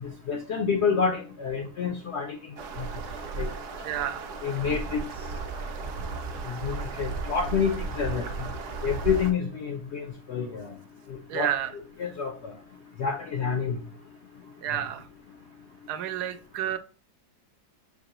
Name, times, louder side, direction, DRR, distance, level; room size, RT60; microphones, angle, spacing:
voice 1, 0.0-2.4 2.8-2.9 3.4-3.5 4.4-5.0 6.5-8.5 8.8-10.7 11.3-11.5 12.0-12.5 13.0-13.8 14.7-14.8, left 6 dB, 75° left, 4 dB, 0.6 m, -28 dB
sound 1, 2.6-9.3, right 4 dB, 65° right, 0.8 m, -35 dB
voice 2, 3.8-4.3 11.3-11.7 14.6-15.1 15.9-16.8, right 11 dB, 85° right, 10 dB, 1.1 m, -30 dB
5.8 x 2.9 x 2.9 m, 0.39 s
omnidirectional pair, 1.7 m